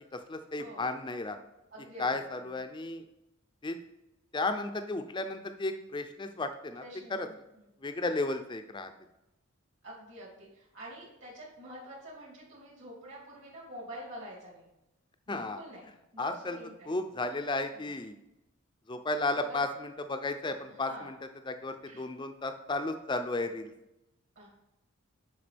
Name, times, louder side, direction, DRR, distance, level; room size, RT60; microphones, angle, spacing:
voice 1, 0.1-1.4 2.0-3.0 3.6-3.8 4.3-6.8 7.1-7.3 7.8-8.9 15.3-15.6 16.2-16.6 16.9-18.1 18.9-21.2 21.4-23.7, left 2 dB, 20° left, 8 dB, 0.5 m, -34 dB
voice 2, 1.7-2.1 6.8-7.4 9.8-14.7 15.3-15.8 16.1-16.9 17.7-17.9 19.4-19.6 20.7-21.1 21.8-22.1 24.3-24.5, equal, 65° right, -5 dB, 2.9 m, -47 dB
11.0 x 4.8 x 3.4 m, 0.91 s
head